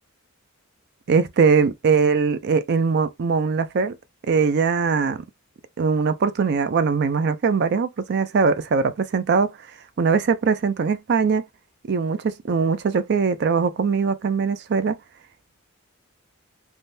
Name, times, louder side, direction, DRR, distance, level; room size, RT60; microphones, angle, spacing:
voice 1, 1.1-4.0 4.2-5.2 5.8-9.6 10.0-11.4 11.9-15.0, right 5 dB, 55° right, 0.4 m, -21 dB
3.5 x 2.2 x 2.6 m
head